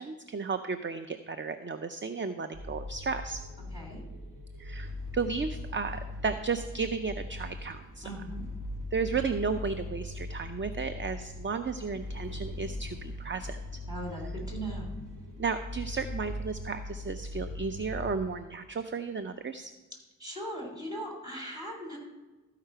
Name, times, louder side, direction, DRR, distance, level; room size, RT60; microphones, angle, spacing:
voice 1, 0.0-3.4 4.6-8.0 8.9-13.6 15.4-19.7, right 5 dB, 40° right, 9 dB, 0.5 m, -34 dB
sound 1, 2.5-18.1, left 1 dB, 90° right, 2.6 m, -40 dB
voice 2, 3.7-4.0 8.0-8.4 13.9-14.9 20.2-22.0, right 1 dB, 10° right, 0 dB, 3.2 m, -39 dB
14.0 x 4.9 x 5.6 m, 1.2 s
wide cardioid pair, 65°, 31 cm